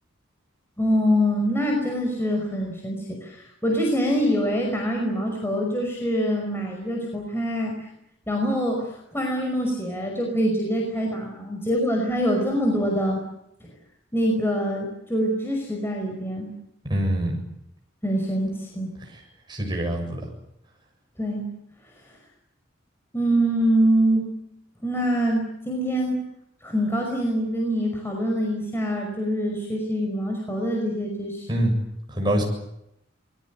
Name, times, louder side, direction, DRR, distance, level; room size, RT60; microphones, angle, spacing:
voice 1, 0.8-7.9 8.3-13.2 13.6-13.7 14.1-16.5 18.0-18.9 21.2-21.4 23.1-24.3 24.8-26.2 26.6-31.5, equal, 10° left, 0 dB, 5.5 m, -24 dB
voice 2, 16.8-17.4 19.1-19.2 19.5-20.2 31.5-31.8 32.1-32.4, right 1 dB, 25° right, 1 dB, 7.6 m, -24 dB
28.5 x 22.0 x 7.8 m, 0.81 s
head